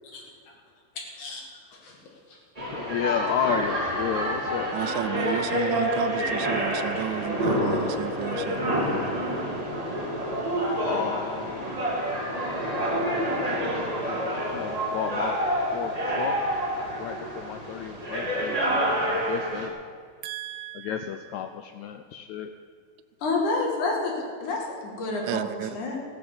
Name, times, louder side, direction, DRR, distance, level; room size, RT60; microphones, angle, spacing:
sound 1, 2.5-19.7, equal, 20° right, 1.2 m, -28 dB
voice 1, 2.9-4.8 10.8-11.8 13.7-15.3 15.7-16.4 17.0-19.8 20.7-22.5, left 9 dB, 85° left, 7 dB, 1.6 m, -32 dB
voice 2, 4.7-8.6 20.2-20.9 25.2-25.8, right 13 dB, 80° right, 11 dB, 1.8 m, -32 dB
voice 3, 23.2-24.1 24.4-26.0, left 3 dB, 65° left, 0 dB, 3.5 m, -29 dB
15.5 x 9.4 x 6.9 m, 2.1 s
omnidirectional pair, 3.9 m